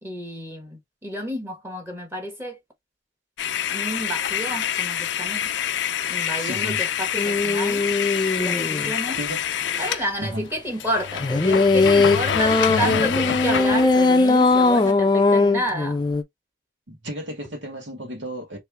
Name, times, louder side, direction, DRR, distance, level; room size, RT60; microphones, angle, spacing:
voice 1, 0.0-2.6 3.7-5.5 6.1-7.8 8.4-9.2 9.8-16.0, equal, 15° right, 1.2 m, -30 dB
sound 1, 3.4-10.1 10.5-10.6 10.8-14.9, left 9 dB, 85° left, 0.4 m, -27 dB
voice 2, 6.4-6.8 9.2-9.4 10.2-10.5 12.7-13.2 16.9-18.6, right 1 dB, 90° right, 1.8 m, -32 dB
sound 2, 7.2-8.9 11.2-16.2, left 3 dB, 25° left, 0.4 m, -20 dB
3.3 x 3.2 x 3.4 m
head